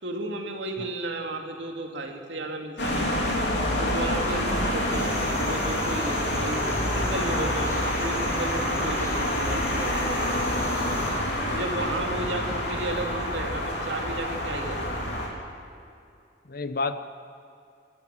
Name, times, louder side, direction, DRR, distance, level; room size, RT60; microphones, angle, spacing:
voice 1, 0.0-3.2 3.8-6.6 6.9-10.2 11.5-14.8, right 2 dB, 80° right, 3 dB, 2.5 m, -33 dB
sound 1, 2.8-15.3, left 1 dB, 70° left, 3.9 m, -27 dB
sound 2, 4.9-11.1, equal, 15° left, 4.2 m, -38 dB
sound 3, 5.3-5.5 7.5-7.6 8.8-9.0 10.3-10.5 11.8-11.9 13.2-13.4 14.7-14.8, right 1 dB, 35° right, 6.3 m, -49 dB
voice 2, 16.5-17.2, left 3 dB, 55° left, 10 dB, 1.0 m, -32 dB
27.5 x 14.5 x 7.8 m, 2.5 s
head